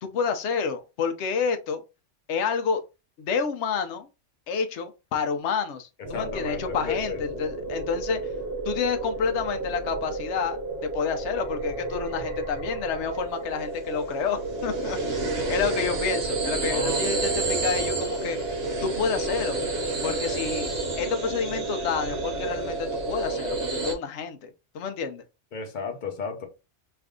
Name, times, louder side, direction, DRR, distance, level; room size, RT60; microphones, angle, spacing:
voice 1, 0.0-1.8 2.3-2.8 3.2-4.1 4.5-8.2 8.7-10.6 10.9-15.0 15.5-18.4 18.8-19.6 20.0-20.7 21.0-25.2, left 6 dB, 75° left, 1.0 m, -29 dB
sound 1, 6.0-23.9, right 2 dB, 60° right, 1.1 m, -30 dB
voice 2, 6.1-7.2 16.7-17.0 25.5-26.5, left 5 dB, 45° left, 0.9 m, -33 dB
3.3 x 2.6 x 3.6 m
omnidirectional pair, 1.2 m